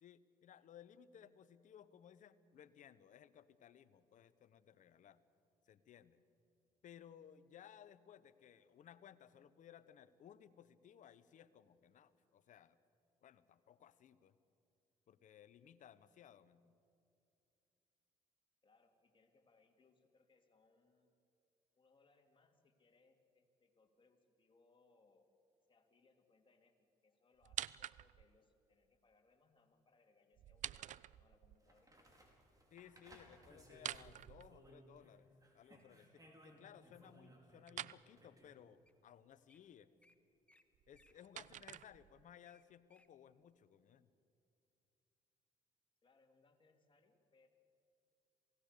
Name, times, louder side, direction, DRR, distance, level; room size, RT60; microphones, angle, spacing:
voice 1, 0.0-5.2 5.6-6.2 6.8-12.8 13.2-14.4 15.1-16.7 32.7-39.9 40.9-44.1, left 9 dB, 60° left, 14 dB, 1.1 m, -61 dB
voice 2, 18.6-21.1 21.7-25.3 25.7-32.2 46.0-47.5, left 3 dB, 35° left, 3 dB, 3.0 m, -73 dB
sound 1, 27.4-28.4 30.4-31.6 33.7-35.0 37.7-38.0 40.7-42.4, right 12 dB, 55° right, 0.5 m, -48 dB
sound 2, 31.6-35.1 35.4-38.6 41.1-41.2, equal, 25° right, 4.9 m, -63 dB
Wild animals, 33.2-33.9 34.6-34.9 35.4-35.8 36.4-37.3 37.9-38.0 38.6-38.7 38.8-39.0 39.3-39.6 40.0-40.1 40.5-40.6 40.9-43.1 43.6-43.7, left 1 dB, 10° left, 1.5 m, -73 dB
27.5 x 17.5 x 6.8 m, 2.6 s
supercardioid pair, 65°, 15 cm